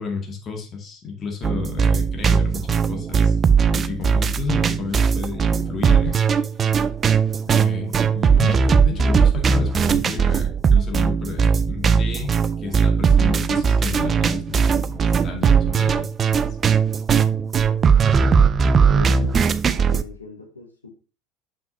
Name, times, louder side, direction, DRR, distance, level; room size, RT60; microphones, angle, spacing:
voice 1, 0.0-3.4 3.7-6.2 7.4-12.3 12.6-16.6, left 5 dB, 35° left, 2 dB, 2.1 m, -32 dB
sound 1, 1.4-20.0, right 6 dB, 35° right, 0.4 m, -19 dB
voice 2, 18.9-21.0, left 3 dB, 90° left, 3 dB, 1.1 m, -38 dB
6.9 x 6.0 x 2.7 m, 0.34 s
figure-of-eight pair, 70°, 0 cm